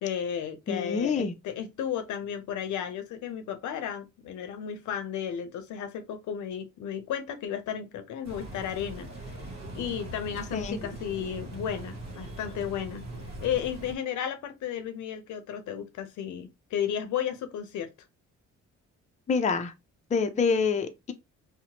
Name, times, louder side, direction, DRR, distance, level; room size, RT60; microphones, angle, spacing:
voice 1, 0.0-9.4 9.7-13.0 13.4-17.9, left 9 dB, 75° left, 0.6 m, -33 dB
voice 2, 0.7-1.3 10.5-10.8 19.3-19.7 20.1-21.1, left 5 dB, 25° left, 0.4 m, -26 dB
sound 1, 8.2-13.9, right 1 dB, 60° right, 1.0 m, -41 dB
2.8 x 2.1 x 2.8 m
cardioid pair, 90°, 30 cm